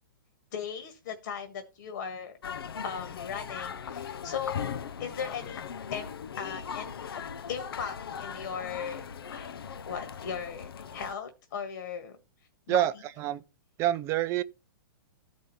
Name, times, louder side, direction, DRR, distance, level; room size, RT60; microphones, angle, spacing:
voice 1, 0.5-2.4 2.8-5.6 5.9-7.2 7.5-9.5 9.9-12.1 12.7-12.9, left 7 dB, 60° left, 1.7 m, -38 dB
sound 1, 2.4-11.1, left 7 dB, 85° left, 0.6 m, -39 dB
voice 2, 12.7-13.4 13.8-14.4, right 13 dB, 25° right, 0.4 m, -27 dB
14.0 x 5.2 x 4.2 m
hypercardioid pair, 145°, 12 cm